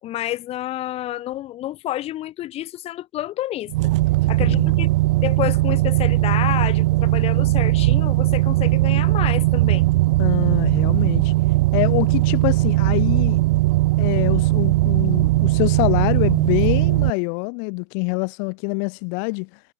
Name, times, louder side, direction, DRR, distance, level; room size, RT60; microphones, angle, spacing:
voice 1, 0.0-3.9 4.3-4.9 5.2-9.9, left 14 dB, 40° left, 5.1 m, -29 dB
sound 1, 3.7-17.1, right 19 dB, 90° right, 0.4 m, -19 dB
voice 2, 4.2-4.7 10.2-13.4 14.0-19.6, left 40 dB or more, 65° left, 3.9 m, -25 dB
supercardioid pair, 135°, 15 cm